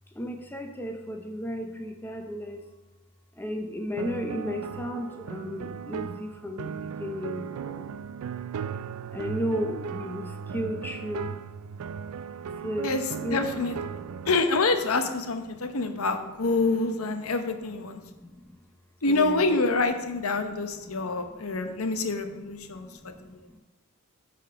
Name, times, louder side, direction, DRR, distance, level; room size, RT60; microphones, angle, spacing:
voice 1, 0.1-2.7 3.3-7.9 9.1-11.3 12.6-14.3 15.4-16.2 17.2-17.4 17.8-18.6 19.1-19.5 20.3-20.5 20.8-22.1 22.6-23.6, equal, 10° left, 4 dB, 0.6 m, -35 dB
sound 1, 4.0-14.4, right 6 dB, 85° right, 0.3 m, -37 dB
voice 2, 13.3-13.8 14.3-18.0 19.0-23.5, left 3 dB, 80° left, 7 dB, 0.8 m, -27 dB
8.6 x 4.1 x 5.6 m, 1.2 s
head